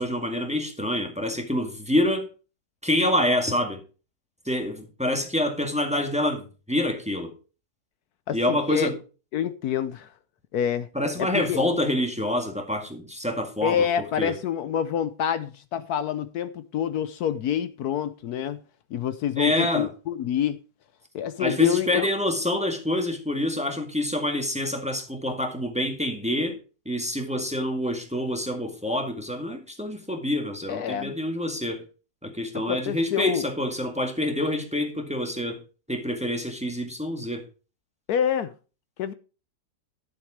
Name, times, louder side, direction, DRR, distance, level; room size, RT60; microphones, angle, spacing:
voice 1, 0.0-2.3 2.8-3.8 4.5-7.3 8.3-9.0 10.9-13.8 14.2-14.3 19.4-19.9 21.4-26.6 26.9-31.8 32.2-35.6 35.9-37.4, left 1 dB, 5° right, 1.8 m, -27 dB
voice 2, 8.3-8.9 9.3-10.1 10.5-10.9 11.2-11.6 13.6-18.6 18.9-20.6 21.1-22.1 30.7-31.1 32.5-33.5 38.1-38.5 39.0-39.1, left 9 dB, 70° left, 1.2 m, -27 dB
12.0 x 7.2 x 4.8 m
omnidirectional pair, 1.7 m